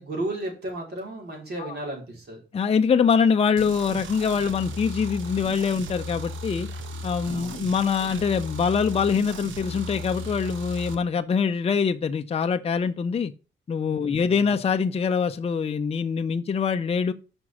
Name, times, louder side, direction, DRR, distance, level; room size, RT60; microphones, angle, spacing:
voice 1, 0.0-2.4 7.3-7.6 13.9-14.5, right 1 dB, 55° right, 4.5 m, -34 dB
voice 2, 2.5-6.7 7.0-13.3 13.7-17.1, left 6 dB, 30° left, 0.6 m, -24 dB
sound 1, 3.6-11.0, equal, 75° right, 1.2 m, -36 dB
6.1 x 5.3 x 5.9 m
cardioid pair, 90°, 20 cm